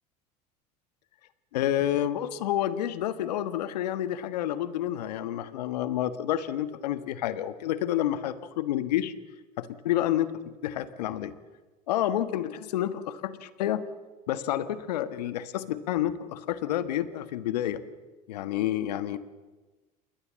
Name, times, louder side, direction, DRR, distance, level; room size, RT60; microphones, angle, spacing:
voice 1, 1.5-9.1 9.6-11.3 11.9-13.8 14.3-17.8 18.3-19.2, left 12 dB, 85° left, 12 dB, 1.4 m, -29 dB
28.5 x 21.0 x 7.5 m, 1.2 s
hypercardioid pair, 80°, 20 cm